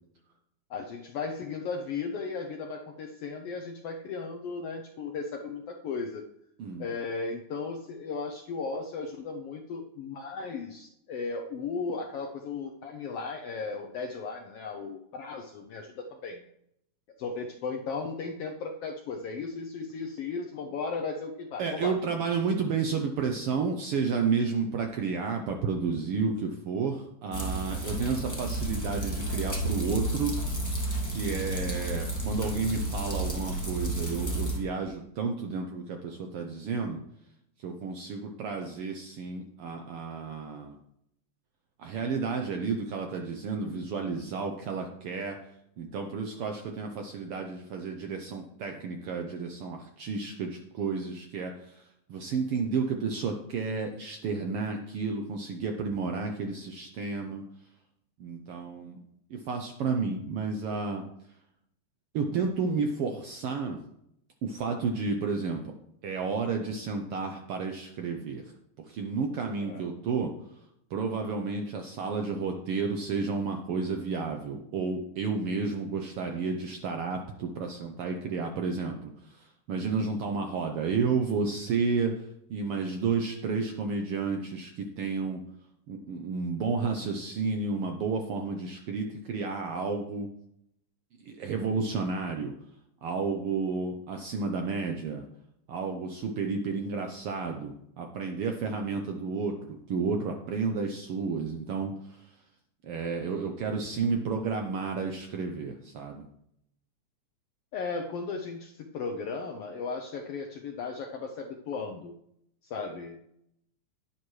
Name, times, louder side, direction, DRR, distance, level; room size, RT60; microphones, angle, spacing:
voice 1, 0.7-6.2 6.8-16.4 17.2-22.0 69.6-69.9 107.7-112.1 112.6-113.2, left 4 dB, 75° left, 3 dB, 1.4 m, -36 dB
voice 2, 21.6-30.4 31.1-37.0 37.6-40.8 41.8-45.4 45.8-51.8 52.1-57.4 58.2-59.0 59.3-61.0 62.1-63.8 64.4-65.6 66.0-68.4 68.9-70.3 70.9-82.2 82.5-85.4 85.9-90.3 91.3-92.5 93.0-95.2 95.7-101.9 102.8-106.2, right 4 dB, 75° right, 4 dB, 1.3 m, -31 dB
sound 1, 27.3-34.6, right 1 dB, 10° left, 1.0 m, -31 dB
10.5 x 10.5 x 3.2 m, 0.77 s
omnidirectional pair, 3.4 m